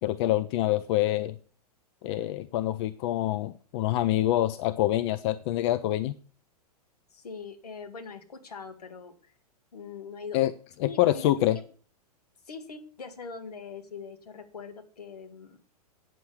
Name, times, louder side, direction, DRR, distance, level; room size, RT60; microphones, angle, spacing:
voice 1, 0.0-1.3 2.0-6.1 10.3-10.5 11.0-11.6, left 14 dB, 45° left, 13 dB, 0.6 m, -26 dB
voice 2, 7.1-9.3 9.7-10.4 10.8-11.6 12.4-15.7, left 5 dB, 75° left, 4 dB, 2.1 m, -42 dB
9.3 x 7.1 x 8.0 m, 0.41 s
figure-of-eight pair, 100°, 20 cm